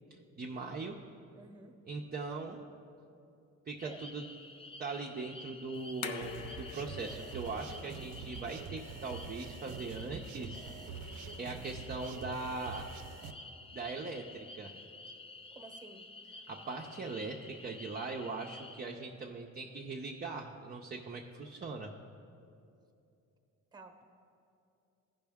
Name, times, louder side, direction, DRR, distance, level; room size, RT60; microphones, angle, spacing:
voice 1, 0.1-1.0 1.9-2.7 3.7-4.2 4.8-10.6 11.4-12.9 13.7-14.7 16.5-21.9, right 3 dB, 30° right, 0 dB, 0.6 m, -40 dB
voice 2, 1.3-1.7 3.8-4.0 15.5-16.1 23.7-24.1, right 3 dB, 15° right, 5 dB, 1.0 m, -51 dB
sound 1, 3.8-18.8, left 3 dB, 20° left, 0.4 m, -51 dB
sound 2, 5.7-12.4, left 6 dB, 70° left, 0.6 m, -49 dB
sound 3, 6.2-13.3, right 5 dB, 85° right, 0.6 m, -46 dB
15.0 x 5.4 x 3.5 m, 2.7 s
cardioid pair, 90°, 30 cm